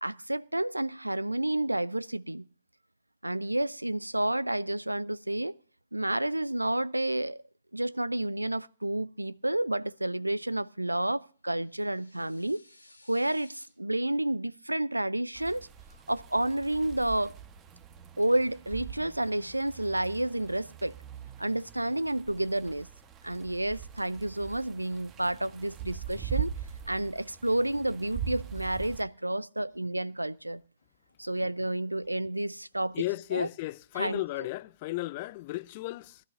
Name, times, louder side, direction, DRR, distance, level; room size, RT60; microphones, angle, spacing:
voice 1, 0.0-2.5 3.2-5.5 5.9-7.4 7.7-12.6 13.1-15.7 16.1-17.4 18.2-20.9 21.4-22.9 23.2-26.5 26.9-30.6 31.2-32.9 33.3-33.5 34.0-34.2, right 1 dB, 85° right, 0.5 m, -30 dB
sound 1, 11.5-13.7, left 2 dB, 85° left, 2.3 m, -58 dB
sound 2, 15.3-29.0, right 8 dB, 20° right, 1.2 m, -41 dB
voice 2, 32.9-36.2, left 19 dB, 35° left, 0.5 m, -34 dB
20.5 x 13.0 x 2.7 m
figure-of-eight pair, 120°, 0 cm